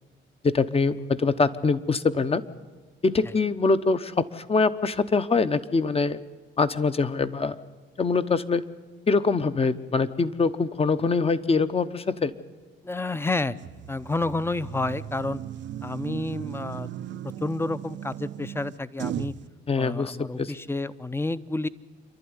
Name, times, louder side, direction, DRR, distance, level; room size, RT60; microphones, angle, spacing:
voice 1, 0.4-2.4 3.0-6.2 6.6-7.6 8.0-8.6 9.1-12.3 19.7-20.5, left 4 dB, 30° left, 12 dB, 0.9 m, -24 dB
voice 2, 12.8-13.6 13.9-15.4 15.8-17.1 17.4-19.3 19.8-21.7, left 2 dB, 10° left, 16 dB, 0.7 m, -30 dB
sound 1, 13.6-19.5, right 11 dB, 65° right, 0.7 m, -37 dB
27.0 x 11.5 x 9.7 m, 1.3 s
cardioid pair, 90°, 20 cm